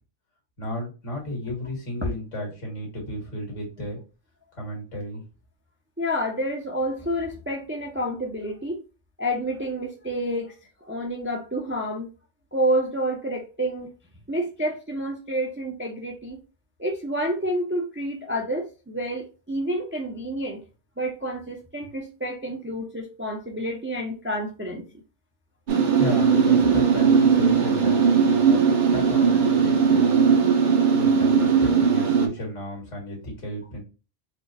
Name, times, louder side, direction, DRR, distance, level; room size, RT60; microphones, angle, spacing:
voice 1, 0.6-4.0 4.6-5.2 26.0-30.3 30.9-33.8, left 1 dB, 80° left, -1 dB, 2.0 m, -33 dB
voice 2, 6.0-8.8 9.2-10.5 10.8-12.1 12.5-13.9 14.3-16.4 16.8-20.6 21.0-24.8 27.6-27.7, equal, 20° right, 1 dB, 0.3 m, -29 dB
sound 1, 25.7-32.3, right 6 dB, 50° right, 0.7 m, -19 dB
4.3 x 2.1 x 2.5 m, 0.32 s
omnidirectional pair, 1.2 m